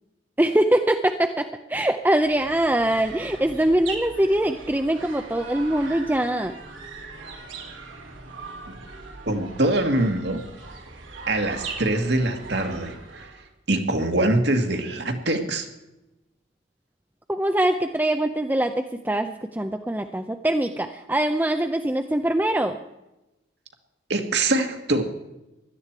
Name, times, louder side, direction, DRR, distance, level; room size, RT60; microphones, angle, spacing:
voice 1, 0.4-6.5 17.3-22.8, right 1 dB, 10° right, 6 dB, 0.5 m, -23 dB
sound 1, 1.9-13.5, right 3 dB, 85° right, 3.2 m, -40 dB
voice 2, 9.3-10.4 11.3-13.3 13.7-15.7 24.1-25.0, right 2 dB, 60° right, 5 dB, 1.9 m, -24 dB
16.5 x 12.0 x 4.7 m, 0.95 s
head